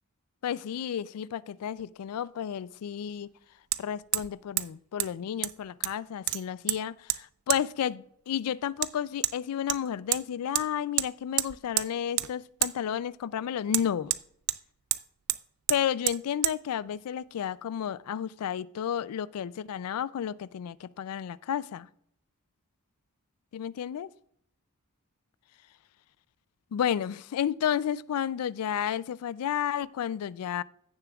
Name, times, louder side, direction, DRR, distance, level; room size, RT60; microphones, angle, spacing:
voice 1, 0.4-3.3 3.8-14.2 15.7-21.9 23.5-24.1 26.7-30.6, left 9 dB, 85° left, 0.3 m, -32 dB
Hammer, 1.8-1.9 3.7-3.8 4.1-4.3 4.6-4.7 5.0-5.1 5.4-6.0 6.3-6.8 7.1-7.2 7.5-7.6 8.8-8.9 9.2-9.3 9.7-10.2 10.5-10.7 11.0-11.1 11.4-11.9 12.2-12.3 12.6-12.7 13.7-14.6 14.9-15.0 15.3-15.4 15.7-15.8 16.1-16.2 16.4-16.6, right 17 dB, 70° right, 0.4 m, -28 dB
15.5 x 6.8 x 2.3 m
head